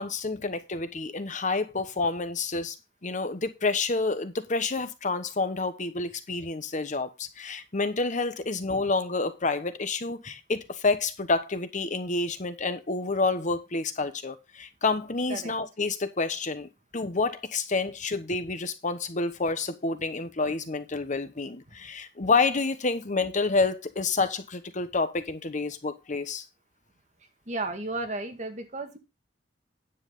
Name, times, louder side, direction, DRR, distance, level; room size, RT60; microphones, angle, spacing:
voice 1, 0.0-2.7 3.0-26.4, left 3 dB, 45° left, 1.1 m, -29 dB
voice 2, 27.5-29.0, right 2 dB, 40° right, 2.0 m, -33 dB
10.0 x 7.8 x 3.8 m
head